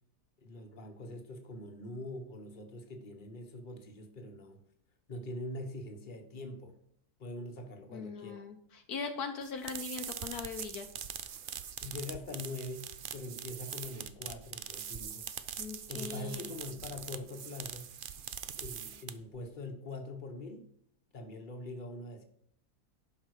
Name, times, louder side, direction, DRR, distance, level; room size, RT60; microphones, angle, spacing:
voice 1, 0.4-4.6 5.1-6.8 7.2-8.3 11.8-15.2 15.9-17.9 18.6-20.7 21.1-22.2, left 2 dB, 30° left, 3 dB, 1.4 m, -43 dB
voice 2, 7.9-10.9 15.6-16.6, left 5 dB, 70° left, 5 dB, 1.3 m, -40 dB
sound 1, 9.4-19.4, right 8 dB, 90° right, 0.4 m, -43 dB
11.0 x 5.5 x 4.8 m, 0.67 s
omnidirectional pair, 1.7 m